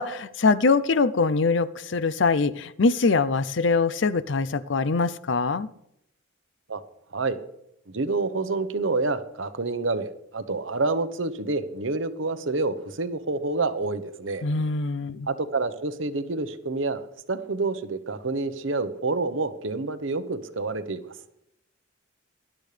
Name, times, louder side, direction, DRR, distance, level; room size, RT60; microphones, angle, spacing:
voice 1, 0.0-5.7 14.4-15.3, left 4 dB, 65° left, 16 dB, 0.6 m, -23 dB
voice 2, 7.9-14.4 15.3-17.0 17.3-21.1, right 3 dB, 75° right, 10 dB, 1.1 m, -28 dB
19.5 x 12.0 x 3.4 m, 0.79 s
head